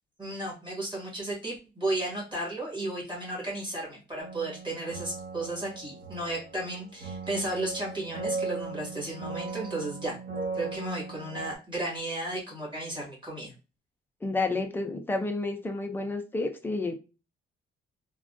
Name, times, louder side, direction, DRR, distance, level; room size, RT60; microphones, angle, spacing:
voice 1, 0.2-10.2 10.5-13.5, right 1 dB, 20° right, -4 dB, 1.3 m, -34 dB
sound 1, 4.2-11.5, right 4 dB, 50° right, 1.1 m, -38 dB
voice 2, 14.2-16.9, left 3 dB, 10° left, 5 dB, 0.3 m, -30 dB
3.4 x 2.2 x 2.4 m, 0.31 s
cardioid pair, 180°, 21 cm